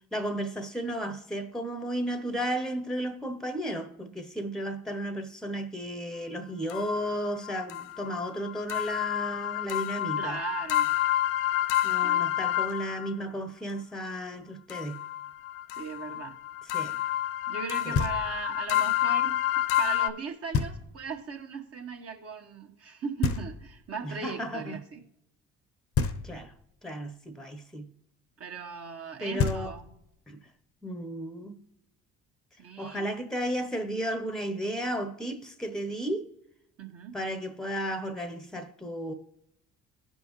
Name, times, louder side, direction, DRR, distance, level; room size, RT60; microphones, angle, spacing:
voice 1, 0.1-10.4 11.8-15.0 16.7-17.0 17.8-18.0 24.0-24.8 26.2-26.5 26.8-27.9 29.2-29.7 30.3-30.4 30.8-31.6 32.8-36.3 37.1-39.1, equal, ahead, 1.0 m, -34 dB
sound 1, 6.7-13.1 14.7-20.1, left 12 dB, 80° left, 0.5 m, -29 dB
voice 2, 10.2-10.9 12.0-12.2 15.7-16.4 17.5-19.4 19.8-25.0 28.4-29.9 32.6-33.1 36.8-37.2, right 5 dB, 45° right, 1.6 m, -38 dB
Knock, 17.9-18.6 20.5-21.2 23.2-24.0 25.9-26.7 29.0-29.1 29.4-30.2, left 5 dB, 45° left, 0.9 m, -30 dB
15.5 x 5.3 x 3.2 m
hypercardioid pair, 60°, 33 cm